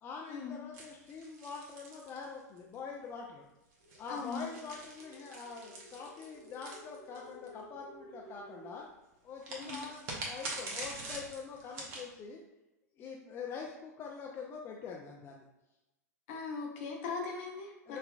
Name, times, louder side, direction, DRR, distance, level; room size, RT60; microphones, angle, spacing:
voice 1, 0.0-3.5 4.0-8.9 9.2-12.4 13.0-15.4 17.9-18.0, left 5 dB, 25° left, -1 dB, 0.4 m, -44 dB
sound 1, 0.7-2.7 3.7-7.5 9.4-12.1, right 2 dB, 40° right, 0.9 m, -44 dB
sound 2, 3.8-8.8, equal, 80° right, 0.8 m, -54 dB
voice 2, 4.1-4.5 9.6-9.8 16.3-18.0, left 4 dB, 50° left, 0 dB, 0.9 m, -39 dB
5.4 x 2.2 x 2.3 m, 0.97 s
figure-of-eight pair, 95°, 9 cm